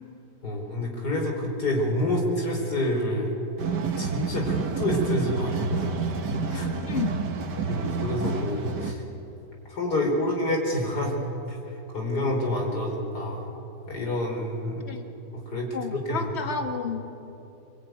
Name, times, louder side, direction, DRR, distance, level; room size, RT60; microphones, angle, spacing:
voice 1, 0.4-3.3 3.9-6.0 6.5-6.7 7.7-9.0 9.7-11.2 11.5-11.6 11.9-13.5 13.9-14.8 15.3-16.3, left 1 dB, 70° left, 1 dB, 4.9 m, -28 dB
sound 1, 3.6-8.9, right 4 dB, 80° right, 2.0 m, -29 dB
voice 2, 15.7-17.0, left 6 dB, 40° left, 5 dB, 1.8 m, -31 dB
24.5 x 21.5 x 9.4 m, 2.9 s
omnidirectional pair, 1.8 m